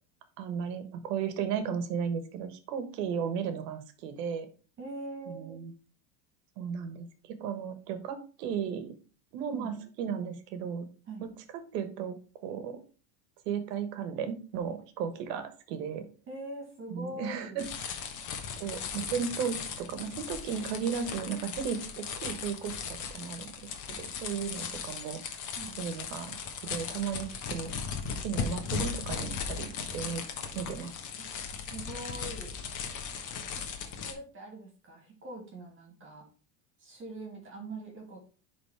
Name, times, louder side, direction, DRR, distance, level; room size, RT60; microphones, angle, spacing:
voice 1, 0.4-4.5 5.3-5.7 6.6-8.9 9.3-10.9 11.2-12.1 12.4-12.8 13.4-16.1 16.9-18.0 18.6-23.5 24.0-25.4 25.8-27.7 28.2-30.2 30.5-30.9, right 7 dB, 75° right, 10 dB, 1.4 m, -35 dB
voice 2, 4.8-5.6 9.5-9.7 11.1-11.3 16.3-17.7 25.5-25.8 31.2-31.3 31.7-32.6 33.6-33.7 34.0-36.2 36.8-38.3, right 2 dB, 25° right, 1 dB, 2.5 m, -42 dB
sound 1, 17.6-34.1, left 6 dB, 40° left, 1.3 m, -37 dB
10.5 x 3.8 x 3.4 m, 0.37 s
supercardioid pair, 135°, 49 cm